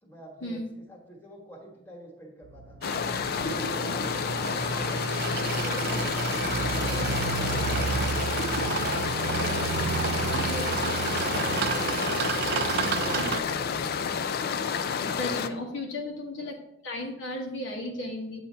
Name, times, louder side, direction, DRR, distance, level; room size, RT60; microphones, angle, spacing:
voice 1, 0.0-2.8 3.4-7.6 8.0-9.8 10.1-12.1 12.6-14.1 15.9-16.5, equal, 10° left, -1 dB, 1.4 m, -46 dB
sound 1, 2.4-14.1, right 2 dB, 85° right, 0.9 m, -50 dB
sound 2, 2.8-15.5, left 6 dB, 50° left, 0.3 m, -30 dB
sound 3, 2.8-13.4, right 6 dB, 55° right, 0.3 m, -30 dB
voice 2, 10.3-11.0 13.2-13.3 15.2-16.6 16.8-18.5, left 1 dB, 70° left, 0 dB, 1.1 m, -35 dB
7.9 x 2.7 x 5.4 m, 0.81 s
head